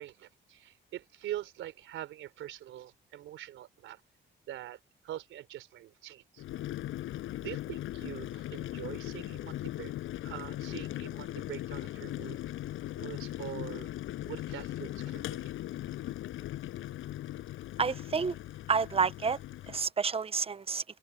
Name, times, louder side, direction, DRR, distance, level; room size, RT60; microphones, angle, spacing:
voice 1, 0.0-4.0 4.5-6.4 7.4-9.9 10.2-12.4 13.0-13.9 14.2-15.5, right 13 dB, 85° right, 3.9 m, -44 dB
Boiling, 6.4-19.9, left 14 dB, 85° left, 7.7 m, -39 dB
voice 2, 17.8-18.4 18.7-19.4 19.7-20.8, right 5 dB, 30° right, 1.0 m, -29 dB
cardioid pair, 90°, 20 cm